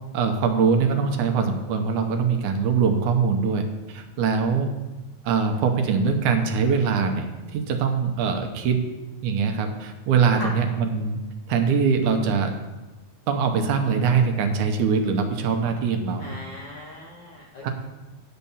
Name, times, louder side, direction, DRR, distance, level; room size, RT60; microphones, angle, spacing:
voice 1, 0.1-4.7 5.2-7.3 7.5-8.8 9.2-11.2 11.5-12.5 13.3-16.3 17.6-17.7, right 5 dB, 80° right, 5 dB, 2.3 m, -22 dB
voice 2, 4.2-4.6 10.4-10.5 16.2-17.7, left 1 dB, 65° left, -3 dB, 1.1 m, -39 dB
9.0 x 5.5 x 7.0 m, 1.1 s
omnidirectional pair, 3.6 m